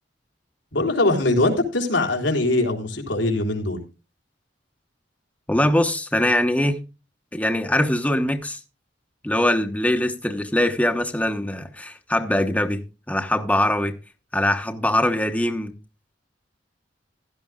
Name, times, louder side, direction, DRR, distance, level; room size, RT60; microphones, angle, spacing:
voice 1, 0.7-3.8, left 2 dB, 90° left, 3.7 m, -22 dB
voice 2, 5.5-6.8 7.3-8.6 9.2-12.8 13.1-13.9 14.3-15.7, left 1 dB, 10° left, 1.1 m, -22 dB
16.0 x 12.5 x 2.4 m
head